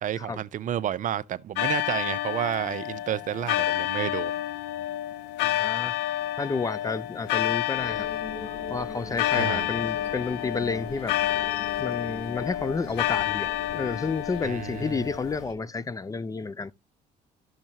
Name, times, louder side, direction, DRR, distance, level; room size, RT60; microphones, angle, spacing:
voice 1, 0.0-4.4 9.4-9.7 14.4-15.1, right 11 dB, 50° right, 0.6 m, -30 dB
sound 1, 1.6-15.4, left 14 dB, 90° left, 0.4 m, -29 dB
voice 2, 5.4-6.0 6.4-8.1 8.7-11.2 11.8-16.7, left 4 dB, 20° left, 0.5 m, -31 dB
sound 2, 7.7-15.5, left 2 dB, 40° left, 3.5 m, -42 dB
12.0 x 6.4 x 2.8 m
cardioid pair, 110°, 17 cm